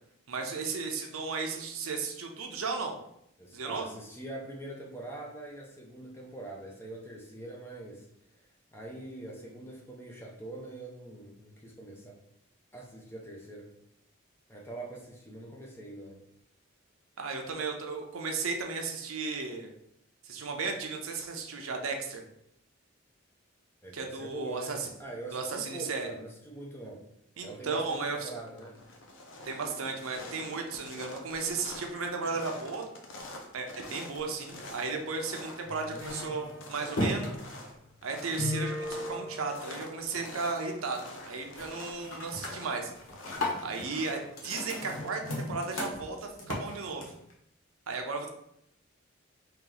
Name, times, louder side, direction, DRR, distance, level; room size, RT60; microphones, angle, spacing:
voice 1, 0.3-3.0 3.5-3.9 17.2-19.7 20.2-22.2 23.9-24.9 25.3-26.1 27.4-28.3 29.4-32.9 33.5-37.4 38.0-42.9 43.6-47.1 47.9-48.3, right 4 dB, 75° right, 3 dB, 0.6 m, -35 dB
voice 2, 3.4-8.1 8.3-12.2 12.7-13.7 14.5-16.2 23.8-27.1 27.4-28.8, right 2 dB, 10° left, -1 dB, 0.5 m, -43 dB
sound 1, 28.4-46.3, left 2 dB, 60° left, 0.6 m, -47 dB
sound 2, 35.6-40.2 40.5-40.9 41.2-41.7 42.0-47.3, left 1 dB, 75° left, 0.9 m, -36 dB
3.0 x 2.9 x 3.9 m, 0.77 s
head